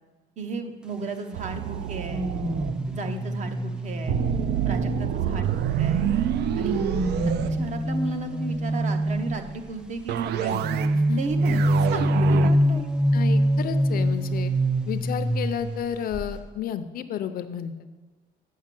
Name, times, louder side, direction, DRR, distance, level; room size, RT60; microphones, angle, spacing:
voice 1, 0.4-2.3 2.9-4.2 4.6-6.1 6.6-6.9 7.5-10.6 11.2-12.9, right 3 dB, 40° right, 6 dB, 0.7 m, -34 dB
sound 1, 1.3-2.8 4.1-8.3 10.1-11.0 11.3-12.5, right 10 dB, 70° right, 0.4 m, -27 dB
sound 2, 2.1-5.7 6.3-9.6 10.6-15.8 16.1-16.4, equal, 5° right, 0.4 m, -25 dB
voice 2, 13.1-14.5 14.9-17.7, left 9 dB, 55° left, 10 dB, 0.5 m, -31 dB
7.3 x 6.1 x 7.4 m, 1.3 s
cardioid pair, 175°, 18 cm